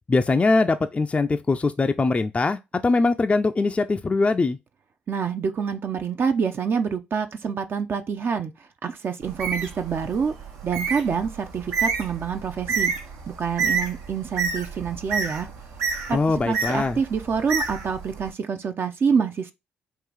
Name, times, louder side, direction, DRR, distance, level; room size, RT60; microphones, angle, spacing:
voice 1, 0.1-4.6 16.1-17.0, left 3 dB, 25° left, 0.4 m, -22 dB
voice 2, 5.1-8.5 8.8-10.3 10.6-12.9 13.4-15.5 16.1-19.5, right 6 dB, 50° right, 0.5 m, -26 dB
Bird, 9.2-18.3, right 5 dB, 75° right, 0.8 m, -30 dB
3.8 x 2.5 x 4.7 m
hypercardioid pair, 50°, 5 cm